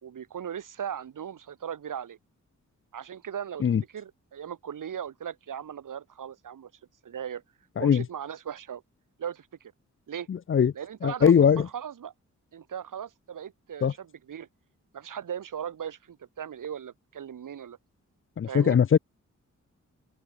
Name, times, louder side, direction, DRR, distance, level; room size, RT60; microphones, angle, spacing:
voice 1, 0.0-2.2 2.9-3.6 3.9-6.7 7.0-7.4 7.8-8.8 9.2-9.7 10.1-10.3 10.7-12.1 12.5-14.5 14.9-17.8 18.5-18.8, right 8 dB, 85° right, 5.1 m, -38 dB
voice 2, 10.3-10.7 11.0-11.7 13.8-13.9 18.4-19.0, left 7 dB, 40° left, 0.5 m, -21 dB
open air
cardioid pair, 80°, 31 cm